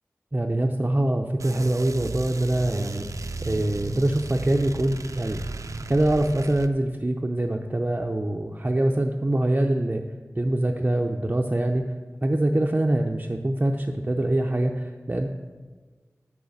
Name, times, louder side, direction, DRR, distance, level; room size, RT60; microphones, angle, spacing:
voice 1, 0.3-3.1 3.4-5.4 5.9-10.0 10.4-11.8 12.2-15.3, right 1 dB, 30° right, 2 dB, 0.6 m, -24 dB
sound 1, 1.4-6.7, right 3 dB, 85° right, 0.5 m, -35 dB
8.6 x 6.4 x 7.1 m, 1.4 s
wide cardioid pair, 55°, 5 cm